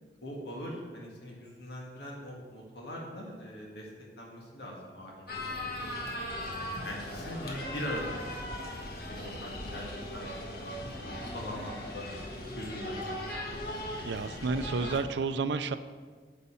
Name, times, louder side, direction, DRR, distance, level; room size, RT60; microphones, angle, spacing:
voice 1, 0.2-3.9 4.2-5.6 5.9-6.1 6.8-8.7 9.1-9.8 10.1-12.0 12.5-13.0, equal, 75° left, -2 dB, 1.8 m, -41 dB
sound 1, 5.3-15.0, left 1 dB, 60° left, 1.6 m, -38 dB
voice 2, 14.0-15.8, right 4 dB, 85° right, 10 dB, 0.5 m, -31 dB
9.8 x 5.4 x 7.0 m, 1.5 s
head